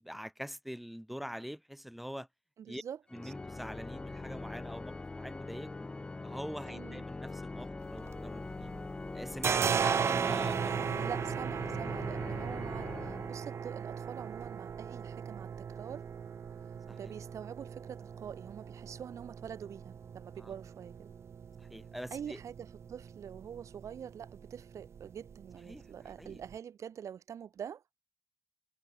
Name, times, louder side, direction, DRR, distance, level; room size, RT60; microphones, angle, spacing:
voice 1, 0.0-2.3 2.7-2.8 3.1-5.9 6.2-8.7 9.1-11.1 16.9-17.1 20.4-20.5 21.6-22.4 25.6-25.9 26.2-26.4, equal, ahead, 1.0 m, -44 dB
voice 2, 2.6-3.0 3.2-3.3 6.7-7.0 9.4-9.8 11.0-16.0 16.9-21.1 22.1-27.8, right 8 dB, 85° right, 1.6 m, -45 dB
Organ, 3.1-13.9, left 3 dB, 20° left, 0.4 m, -43 dB
sound 1, 7.8-8.8 9.0-26.5, right 7 dB, 65° right, 1.3 m, -37 dB
wide cardioid pair, 140°, 5 cm